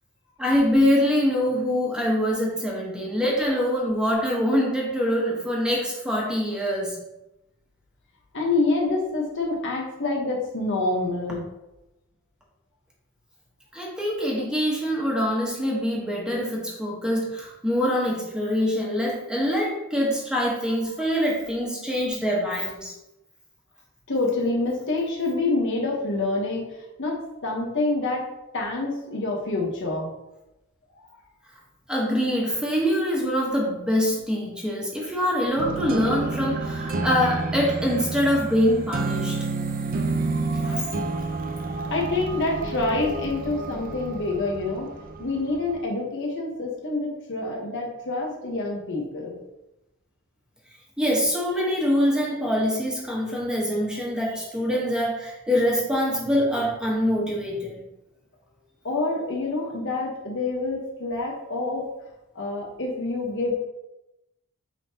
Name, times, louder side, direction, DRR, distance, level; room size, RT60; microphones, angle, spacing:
voice 1, 0.4-7.0 13.7-22.9 31.9-39.4 40.6-40.9 51.0-57.8, equal, 5° right, -4 dB, 1.3 m, -24 dB
voice 2, 8.3-11.4 24.1-26.6 27.0-28.2 28.5-30.1 41.9-44.9 45.2-49.4 58.8-61.9 62.3-63.5, left 2 dB, 60° left, -1 dB, 1.2 m, -27 dB
sound 1, 35.6-45.8, right 3 dB, 40° right, 0.5 m, -30 dB
8.8 x 3.7 x 2.9 m, 0.93 s
head